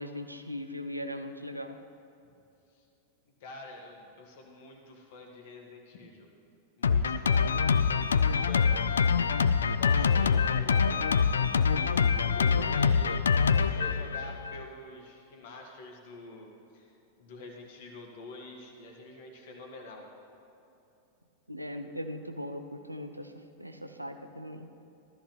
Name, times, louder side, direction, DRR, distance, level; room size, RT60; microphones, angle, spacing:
voice 1, 0.0-1.8 21.5-23.3 23.6-24.6, left 1 dB, 85° right, 6 dB, 0.6 m, -39 dB
voice 2, 3.4-6.3 6.8-7.4 8.3-9.1 9.7-11.0 11.8-20.1, left 2 dB, 50° left, 2 dB, 1.8 m, -47 dB
Drum kit, 6.8-14.6, left 6 dB, 70° left, 0.3 m, -25 dB
15.5 x 13.0 x 3.1 m, 2.8 s
figure-of-eight pair, 90°, 0 cm